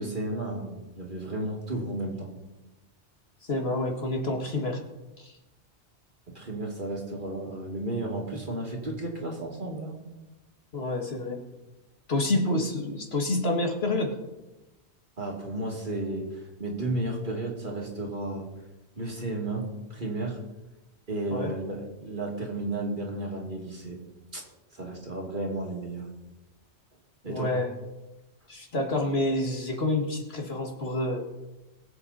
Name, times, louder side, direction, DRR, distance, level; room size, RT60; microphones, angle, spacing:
voice 1, 0.0-2.3 6.3-10.0 15.2-18.5 19.0-19.6 19.9-20.4 21.1-24.0 24.3-24.4 24.7-26.1 27.2-27.5, right 2 dB, 45° right, -1 dB, 2.7 m, -33 dB
voice 2, 3.5-4.8 5.2-5.3 10.7-11.4 12.1-14.2 21.3-21.5 27.3-27.7 28.5-31.2, left 2 dB, 65° left, 2 dB, 2.1 m, -28 dB
21.0 x 8.0 x 4.2 m, 1.0 s
omnidirectional pair, 1.1 m